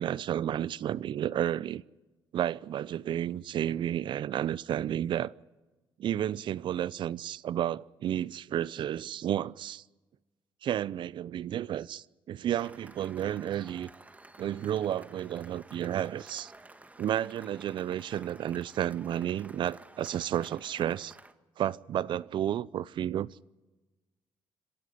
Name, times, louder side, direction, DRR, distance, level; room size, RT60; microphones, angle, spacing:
voice 1, 0.0-1.8 2.3-5.3 6.0-9.8 10.6-13.9 14.4-16.5 17.0-21.2 21.6-23.3, right 11 dB, 65° right, 0.6 m, -32 dB
Cheering / Applause, 12.6-21.3, right 2 dB, 15° right, 1.7 m, -53 dB
26.5 x 13.0 x 9.5 m
cardioid pair, 90°, 9 cm